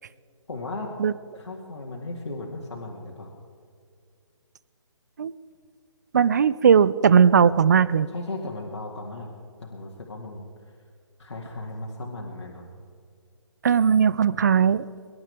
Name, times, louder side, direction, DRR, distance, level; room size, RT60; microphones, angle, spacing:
voice 1, 0.5-1.0 1.3-3.3 8.1-9.3 9.6-10.4 11.2-12.7, left 2 dB, 65° left, -2 dB, 2.4 m, -36 dB
voice 2, 6.1-8.1 13.6-14.8, right 7 dB, 35° right, 18 dB, 0.4 m, -18 dB
25.0 x 12.0 x 3.5 m, 2.2 s
figure-of-eight pair, 145°, 16 cm